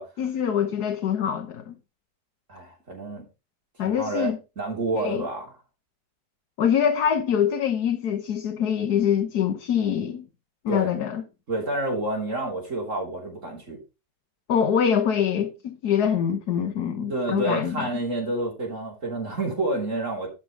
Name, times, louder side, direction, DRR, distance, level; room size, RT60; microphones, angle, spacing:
voice 1, 0.2-1.7 3.8-4.4 4.9-5.2 6.6-10.2 10.6-11.2 14.5-17.9, left 8 dB, 90° left, 1.6 m, -24 dB
voice 2, 2.5-3.2 3.8-5.5 10.7-10.9 11.5-13.8 17.0-20.3, right 2 dB, 55° right, 3.5 m, -29 dB
12.0 x 5.9 x 4.7 m
omnidirectional pair, 1.6 m